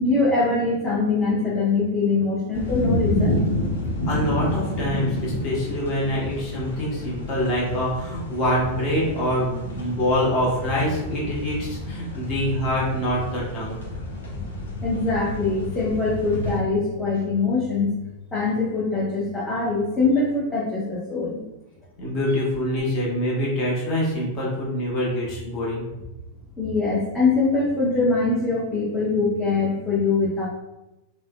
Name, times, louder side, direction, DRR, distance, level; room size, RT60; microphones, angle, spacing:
voice 1, 0.0-3.4 14.8-17.9 18.3-21.4 26.6-30.5, left 3 dB, 15° left, -7 dB, 0.6 m, -23 dB
sound 1, 2.5-16.6, left 2 dB, 65° left, 0.5 m, -30 dB
voice 2, 4.1-13.8 22.0-25.8, equal, 40° left, -5 dB, 1.0 m, -25 dB
3.5 x 2.1 x 2.2 m, 0.98 s
figure-of-eight pair, 90°, 0 cm